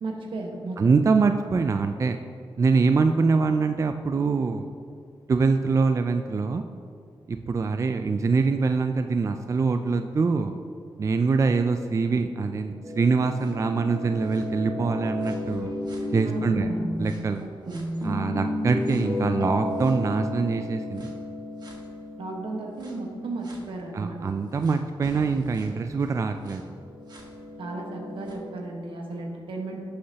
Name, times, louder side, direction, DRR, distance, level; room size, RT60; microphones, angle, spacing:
voice 1, 0.0-1.0 16.3-16.8 17.4-17.8 22.2-24.2 27.6-29.8, right 2 dB, 75° right, 1 dB, 1.3 m, -35 dB
voice 2, 0.8-2.2 2.6-4.7 5.3-6.6 7.3-10.5 11.0-15.7 16.1-16.7 17.0-17.4 18.0-21.1 23.9-26.6, right 4 dB, 35° right, 7 dB, 0.3 m, -24 dB
sound 1, 12.8-17.2 17.7-23.6 24.6-24.7 25.0-28.3, left 1 dB, 55° right, 1.6 m, -33 dB
11.0 x 6.6 x 2.9 m, 2.4 s
cardioid pair, 95°, 9 cm